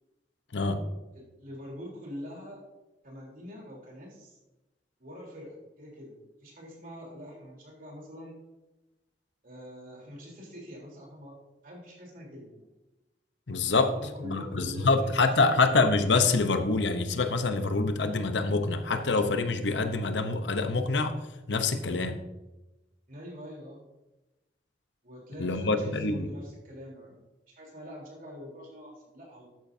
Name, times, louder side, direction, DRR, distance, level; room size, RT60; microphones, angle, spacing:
voice 1, 0.5-0.8 13.5-13.9 14.2-21.2 21.5-22.1 25.4-26.3, left 3 dB, 80° left, 8 dB, 0.9 m, -26 dB
voice 2, 1.1-2.6 3.0-4.4 5.0-6.2 6.4-8.4 9.4-11.4 11.6-12.7 13.9-15.1 15.3-15.6 23.1-23.8 25.0-27.2 27.5-29.5, equal, 50° right, -2 dB, 3.5 m, -44 dB
12.5 x 9.1 x 2.7 m, 1.0 s
head